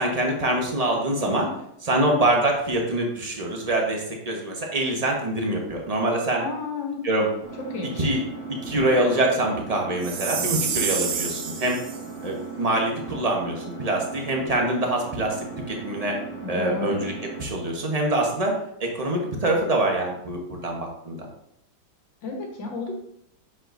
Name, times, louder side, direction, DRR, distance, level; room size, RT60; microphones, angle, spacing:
voice 1, 0.0-1.5 1.8-6.4 7.0-7.3 8.0-8.2 8.5-11.8 12.2-15.4 15.7-16.1 16.5-17.1 17.4-18.5 18.8-21.3, right 1 dB, 25° right, 0 dB, 0.8 m, -24 dB
voice 2, 6.4-7.0 7.6-8.1 16.4-16.9 22.2-22.9, left 4 dB, 70° left, 1 dB, 1.8 m, -32 dB
Engine, 7.4-17.4, right 4 dB, 60° right, 1.9 m, -38 dB
Chime, 10.0-12.0, right 6 dB, 90° right, 1.7 m, -28 dB
7.5 x 6.1 x 2.6 m, 0.76 s
omnidirectional pair, 2.2 m